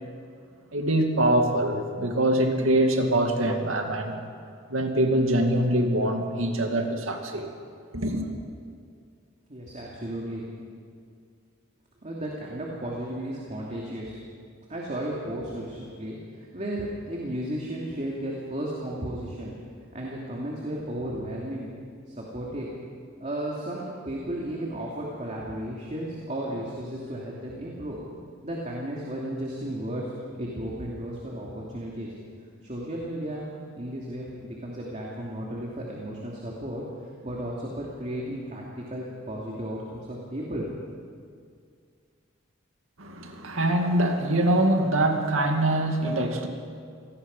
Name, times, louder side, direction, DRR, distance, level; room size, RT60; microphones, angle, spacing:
voice 1, 0.7-4.2 4.7-7.5 7.9-8.3 43.0-46.5, right 1 dB, 90° right, 4 dB, 2.3 m, -24 dB
voice 2, 9.5-10.4 12.0-14.2 14.7-19.5 19.9-21.7 22.1-22.7 23.2-28.0 28.4-30.0 30.4-32.1 32.6-33.4 33.7-36.9 37.2-40.7, right 1 dB, 35° right, -3 dB, 2.8 m, -34 dB
26.5 x 19.0 x 5.5 m, 2.2 s
head